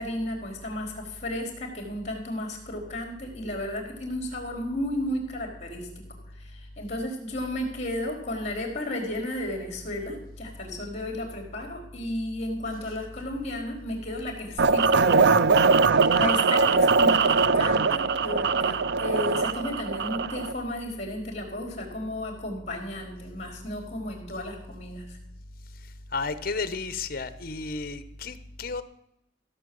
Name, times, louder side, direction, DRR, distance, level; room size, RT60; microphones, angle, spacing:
voice 1, 0.0-6.0 6.4-15.3 15.9-25.2, left 1 dB, 40° left, 2 dB, 4.0 m, -33 dB
sound 1, 14.6-20.5, right 4 dB, 65° right, 0.5 m, -21 dB
voice 2, 25.7-28.8, left 4 dB, 55° left, 12 dB, 1.0 m, -33 dB
16.0 x 7.3 x 7.7 m, 0.82 s
head